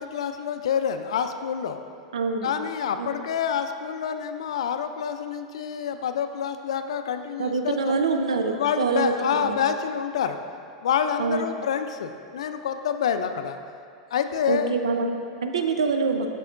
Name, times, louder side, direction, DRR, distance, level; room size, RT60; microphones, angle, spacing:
voice 1, 0.0-1.8 2.4-7.9 8.5-10.4 10.8-13.6 14.1-14.7, left 8 dB, 80° left, 8 dB, 0.4 m, -27 dB
voice 2, 2.1-2.5 3.0-3.1 7.4-9.6 11.2-11.4 14.5-16.3, right 4 dB, 90° right, 5 dB, 0.5 m, -25 dB
6.8 x 6.2 x 2.5 m, 2.6 s
hypercardioid pair, 105°, 3 cm